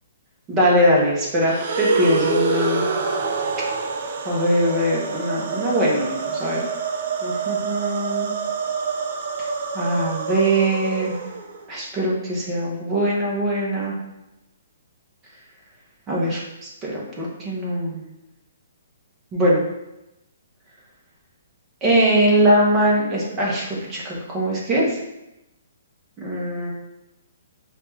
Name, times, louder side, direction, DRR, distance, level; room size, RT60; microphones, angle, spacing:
voice 1, 0.5-2.8 4.3-6.7 7.2-8.3 9.7-11.1 11.7-13.9 16.1-16.4 16.8-18.0 19.3-19.6 21.8-24.8 26.2-26.7, right 1 dB, 15° right, -4 dB, 0.8 m, -21 dB
sound 1, 1.4-11.7, right 4 dB, 40° right, 0.4 m, -26 dB
4.9 x 2.3 x 3.0 m, 0.92 s
hypercardioid pair, 170°, 0 cm